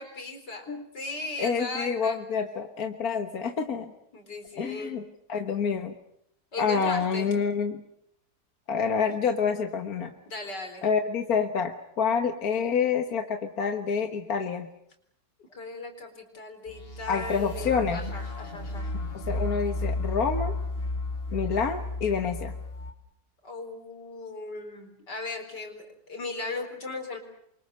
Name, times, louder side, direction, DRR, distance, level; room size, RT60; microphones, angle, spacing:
voice 1, 0.0-0.6 0.9-2.2 4.1-5.0 6.5-7.3 10.3-10.9 15.5-18.9 23.4-27.2, left 3 dB, 80° left, 5 dB, 5.0 m, -37 dB
voice 2, 1.4-3.9 4.6-5.0 5.3-5.9 6.6-7.8 8.7-10.1 10.8-14.7 17.1-18.0 19.1-20.5 21.3-22.5, left 6 dB, 60° left, 5 dB, 1.9 m, -27 dB
sound 1, 16.7-22.9, left 2 dB, 35° left, 3.1 m, -33 dB
29.0 x 24.5 x 6.7 m, 0.75 s
omnidirectional pair, 1.8 m